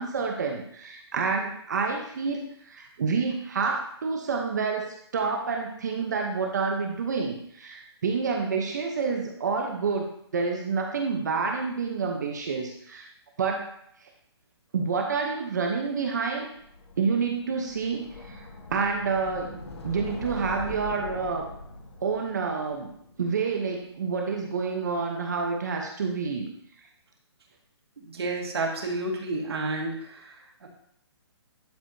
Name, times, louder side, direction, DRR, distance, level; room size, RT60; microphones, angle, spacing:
voice 1, 0.0-13.1 13.4-13.7 14.7-16.5 17.0-19.6 19.8-21.5 22.0-22.9 23.2-26.5, right 5 dB, 40° right, 2 dB, 0.9 m, -28 dB
sound 1, 16.6-23.6, left 3 dB, 75° left, 1.6 m, -42 dB
voice 2, 28.0-30.7, right 2 dB, 65° right, 0 dB, 2.0 m, -31 dB
11.5 x 4.8 x 2.7 m, 0.69 s
hypercardioid pair, 175°, 14 cm